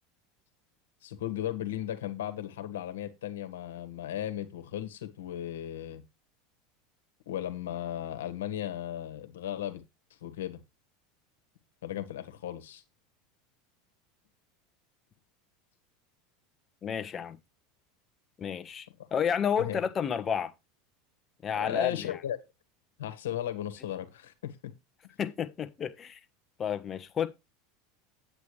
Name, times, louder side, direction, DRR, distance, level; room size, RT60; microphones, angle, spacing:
voice 1, 1.0-6.0 7.3-9.8 10.2-10.6 11.8-12.8 19.7-19.8 21.5-22.4 23.0-24.5, left 11 dB, 85° left, 1.5 m, -36 dB
voice 2, 16.8-17.4 18.4-20.5 21.4-22.2 25.2-26.2 26.6-27.3, left 8 dB, 30° left, 1.2 m, -31 dB
8.8 x 8.2 x 3.3 m
hypercardioid pair, 100°, 0 cm